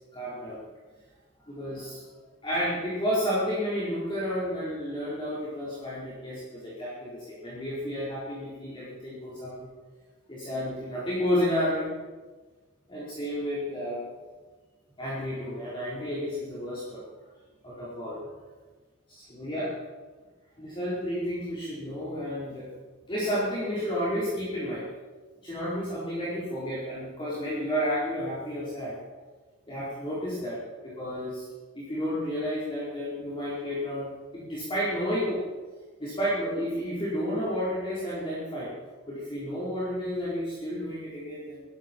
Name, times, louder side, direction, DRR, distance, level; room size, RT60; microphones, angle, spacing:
voice 1, 0.1-0.6 1.5-2.0 2.4-9.7 10.3-11.9 12.9-14.1 15.0-17.0 17.6-18.2 19.1-19.7 20.6-22.7 23.1-24.8 25.4-29.0 29.7-31.5 31.7-35.4 36.0-38.7 39.1-41.6, equal, 25° left, -9 dB, 4.6 m, -31 dB
17.5 x 15.5 x 4.7 m, 1.3 s
head